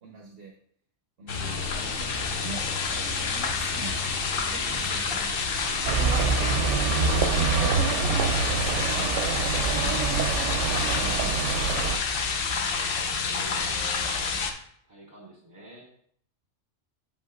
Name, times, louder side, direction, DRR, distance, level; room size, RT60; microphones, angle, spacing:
voice 1, 0.0-0.5 1.2-2.7 3.2-5.3 6.1-7.7 8.4-10.3 10.7-11.9, right 3 dB, 60° right, 0 dB, 1.0 m, -44 dB
voice 2, 1.2-1.6 13.2-14.5 14.9-15.9, equal, 35° right, -2 dB, 2.1 m, -47 dB
sound 1, 1.3-14.5, left 5 dB, 60° left, 0.8 m, -28 dB
sound 2, 1.4-10.5, right 2 dB, 10° right, 1.1 m, -44 dB
sound 3, 5.9-12.0, right 5 dB, 85° right, 0.9 m, -26 dB
8.7 x 5.2 x 2.3 m, 0.64 s
omnidirectional pair, 1.2 m